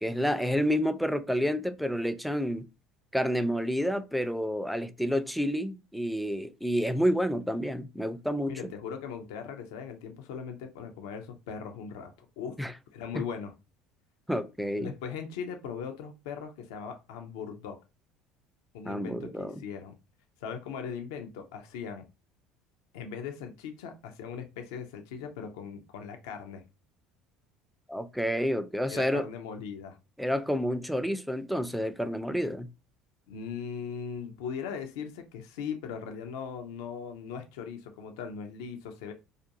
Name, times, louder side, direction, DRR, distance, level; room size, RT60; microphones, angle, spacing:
voice 1, 0.0-2.7 3.1-8.6 12.6-12.7 13.1-13.2 14.3-14.9 18.8-19.6 27.9-29.3 30.2-32.7, equal, ahead, 0.3 m, -29 dB
voice 2, 8.5-12.6 12.9-13.5 14.8-17.8 18.7-19.9 20.4-22.1 22.9-26.6 28.9-30.0 33.3-39.1, left 7 dB, 85° left, 0.4 m, -39 dB
2.4 x 2.2 x 2.7 m
supercardioid pair, 90°, 2 cm